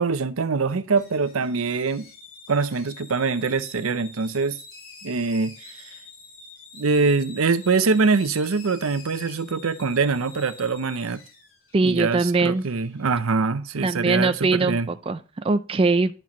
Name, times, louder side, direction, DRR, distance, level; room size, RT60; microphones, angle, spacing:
voice 1, 0.0-2.1 2.5-4.6 5.0-5.9 6.7-11.2 11.8-14.9, right 4 dB, 85° right, 0.7 m, -24 dB
sound 1, 1.0-13.2, left 4 dB, 80° left, 3.0 m, -47 dB
voice 2, 11.7-12.6 13.8-16.1, right 3 dB, 25° right, 0.4 m, -22 dB
10.5 x 6.0 x 3.0 m
head